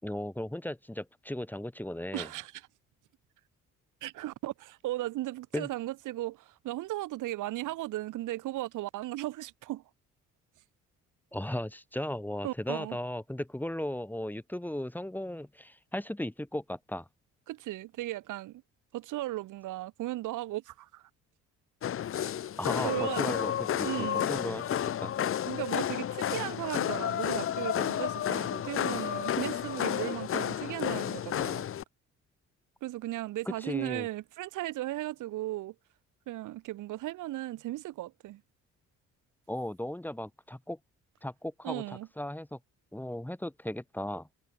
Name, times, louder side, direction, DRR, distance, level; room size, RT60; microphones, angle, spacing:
voice 1, 0.0-2.3 5.5-5.7 11.3-17.1 22.6-25.1 33.6-34.1 39.5-40.8 41.2-42.6 42.9-44.3, left 1 dB, 5° left, 4.1 m, -36 dB
voice 2, 2.1-2.6 4.0-9.8 12.4-13.0 17.5-18.6 18.9-21.1 22.8-23.3 23.8-24.3 25.5-31.6 32.8-35.8 36.3-38.4 41.6-42.1, right 16 dB, 90° right, 3.7 m, -36 dB
sound 1, 21.8-31.8, left 10 dB, 45° left, 0.7 m, -31 dB
cardioid pair, 90°, 30 cm